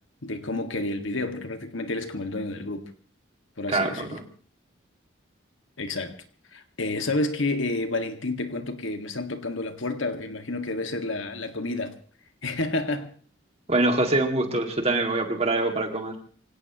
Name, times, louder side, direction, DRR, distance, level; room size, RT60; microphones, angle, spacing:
voice 1, 0.2-2.9 3.6-4.2 5.8-6.2 6.5-12.0 12.4-13.1, left 2 dB, 80° left, 1.9 m, -30 dB
voice 2, 3.7-4.2 13.7-16.1, right 2 dB, 30° right, 2.2 m, -24 dB
25.5 x 17.0 x 3.0 m
head